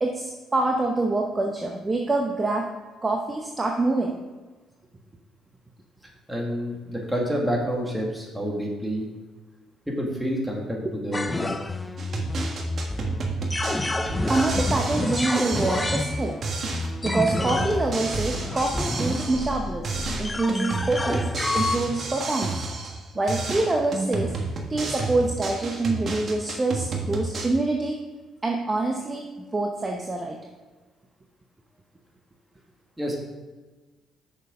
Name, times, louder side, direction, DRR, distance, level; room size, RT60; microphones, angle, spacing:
voice 1, 0.0-2.7 3.0-4.2 10.8-10.9 14.3-16.4 17.0-22.5 23.1-24.3 24.7-28.0 28.4-30.4, right 2 dB, 20° right, 1 dB, 0.9 m, -26 dB
voice 2, 6.0-9.1 9.9-11.5 33.0-33.2, equal, 5° right, -1 dB, 1.9 m, -28 dB
sound 1, 11.1-21.8, left 2 dB, 15° left, 0.5 m, -29 dB
sound 2, 12.0-16.2 16.4-19.6 19.8-23.0 23.3-27.5, right 3 dB, 45° right, 1.4 m, -30 dB
6.8 x 6.3 x 5.0 m, 1.2 s
cardioid pair, 105°, 0 cm